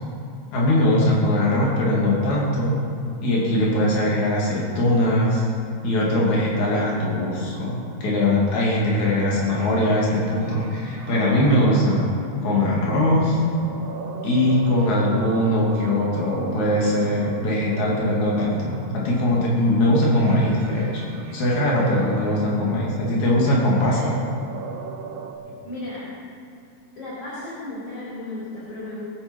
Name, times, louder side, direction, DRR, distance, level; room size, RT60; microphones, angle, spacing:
voice 1, 0.5-2.8 3.2-5.5 5.8-12.1 12.4-13.4 14.2-21.0 21.3-24.1, left 1 dB, 80° left, -5 dB, 4.2 m, -21 dB
sound 1, 6.3-25.3, right 6 dB, 65° right, 2.1 m, -40 dB
sound 2, 13.4-17.4, left 1 dB, 10° right, 2.3 m, -40 dB
voice 2, 25.6-26.1 27.0-29.0, left 2 dB, 50° left, -8 dB, 5.3 m, -34 dB
22.0 x 8.6 x 5.5 m, 2.6 s
omnidirectional pair, 3.3 m